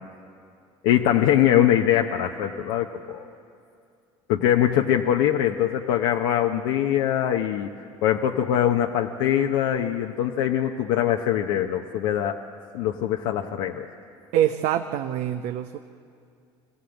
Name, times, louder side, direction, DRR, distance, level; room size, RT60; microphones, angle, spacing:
voice 1, 0.8-3.3 4.3-7.7 8.0-12.4 12.7-13.9, left 11 dB, 85° left, 3 dB, 0.8 m, -22 dB
voice 2, 14.3-15.8, right 11 dB, 70° right, 7 dB, 0.7 m, -24 dB
23.0 x 15.5 x 8.0 m, 2.4 s
supercardioid pair, 85°, 12 cm